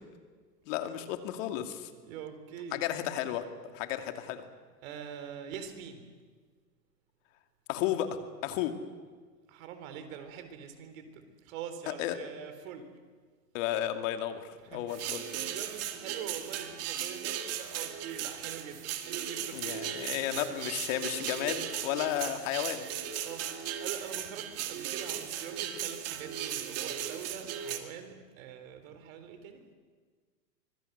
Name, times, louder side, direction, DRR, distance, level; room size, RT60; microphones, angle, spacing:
voice 1, 0.7-1.9 2.7-4.4 7.7-8.7 11.9-12.2 13.5-15.4 19.5-22.8, left 11 dB, 50° left, 7 dB, 2.7 m, -33 dB
voice 2, 2.0-2.9 4.8-6.1 9.5-12.9 14.6-20.5 23.2-29.6, right 8 dB, 50° right, 9 dB, 4.1 m, -44 dB
sound 1, 14.9-27.8, right 10 dB, 30° right, 2.3 m, -37 dB
25.0 x 21.5 x 8.2 m, 1.5 s
hypercardioid pair, 125°, 49 cm